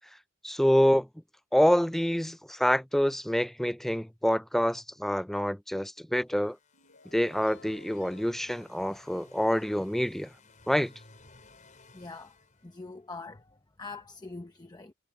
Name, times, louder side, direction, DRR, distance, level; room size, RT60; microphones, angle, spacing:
voice 1, 0.4-1.1 1.5-6.6 7.1-10.3 10.7-10.9, equal, ahead, 0.3 m, -26 dB
sound 1, 6.3-13.2, left 3 dB, 35° left, 5.1 m, -58 dB
sound 2, 6.7-9.6, left 3 dB, 60° left, 5.4 m, -56 dB
voice 2, 11.9-12.3 12.6-13.4 13.8-14.9, left 3 dB, 20° left, 0.8 m, -43 dB
head